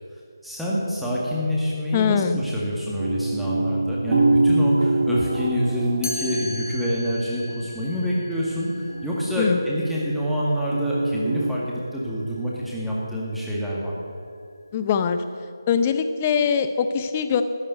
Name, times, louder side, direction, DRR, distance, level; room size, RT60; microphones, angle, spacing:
voice 1, 0.4-13.9, equal, ahead, -7 dB, 1.9 m, -26 dB
voice 2, 1.9-2.4 9.4-9.6 14.7-15.2 15.7-17.4, left 7 dB, 20° left, 10 dB, 0.7 m, -22 dB
sound 1, 3.0-7.1 7.3-9.6 10.7-11.5, right 2 dB, 60° right, 2.0 m, -25 dB
Chime, 6.0-11.9, left 2 dB, 45° left, 2.0 m, -39 dB
13.0 x 9.6 x 8.0 m, 2.5 s
figure-of-eight pair, 160°, 2 cm